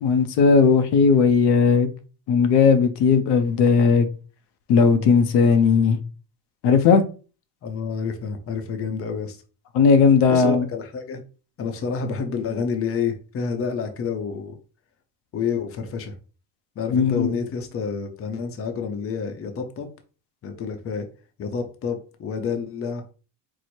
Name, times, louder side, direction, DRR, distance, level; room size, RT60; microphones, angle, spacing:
voice 1, 0.0-1.9 2.3-4.1 4.7-6.0 6.6-7.0 9.7-10.7 16.9-17.3, left 5 dB, 75° left, 0.7 m, -17 dB
voice 2, 7.6-9.4 10.3-11.2 11.6-14.6 15.3-16.1 16.8-19.9 20.4-21.1 21.4-23.1, left 6 dB, 35° left, 0.6 m, -29 dB
4.6 x 2.0 x 4.3 m
cardioid pair, 150°, 41 cm